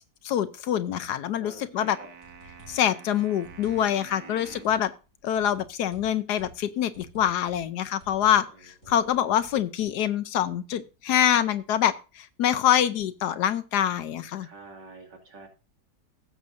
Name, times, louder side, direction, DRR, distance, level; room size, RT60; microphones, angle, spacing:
voice 1, 0.2-2.0 2.7-4.9 5.2-14.5, left 10 dB, 75° left, 13 dB, 1.2 m, -25 dB
voice 2, 1.4-2.1 4.2-4.7 8.5-9.4 14.4-15.5, right 3 dB, 80° right, 2 dB, 2.9 m, -48 dB
sound 1, 1.8-4.8, right 7 dB, 65° right, 1.6 m, -48 dB
sound 2, 2.2-2.9 3.4-4.1 4.4-4.9 5.3-6.6 6.9-7.7 8.0-8.4 8.7-9.6, right 1 dB, 45° left, 5.4 m, -51 dB
16.0 x 7.0 x 2.6 m, 0.32 s
omnidirectional pair, 1.9 m